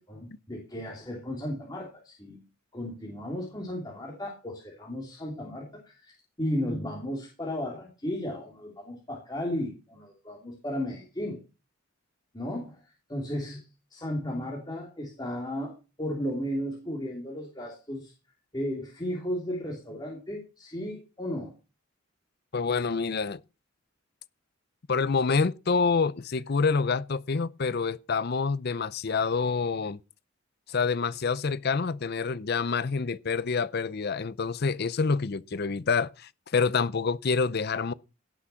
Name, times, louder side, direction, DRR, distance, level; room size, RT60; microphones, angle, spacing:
voice 1, 0.0-2.4 2.7-11.4 12.3-12.8 13.1-13.6 13.9-18.1 18.5-21.5, left 1 dB, 20° left, 3.0 m, -34 dB
voice 2, 22.5-23.4 24.9-30.0 30.7-37.9, left 5 dB, 50° left, 0.6 m, -27 dB
17.0 x 6.2 x 5.7 m
head